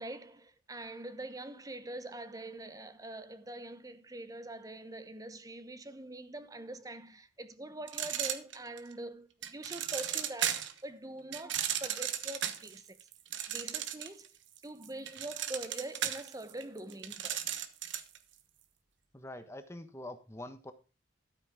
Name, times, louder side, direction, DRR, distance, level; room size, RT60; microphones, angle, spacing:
voice 1, 0.0-13.0 13.5-14.3 14.6-17.5, right 1 dB, 20° right, 0.9 m, -44 dB
sound 1, 7.9-8.9 9.4-10.8 11.3-14.3 14.6-18.2, right 10 dB, 65° right, 1.2 m, -35 dB
voice 2, 19.1-20.7, left 1 dB, 15° left, 1.3 m, -45 dB
13.0 x 8.7 x 3.6 m
head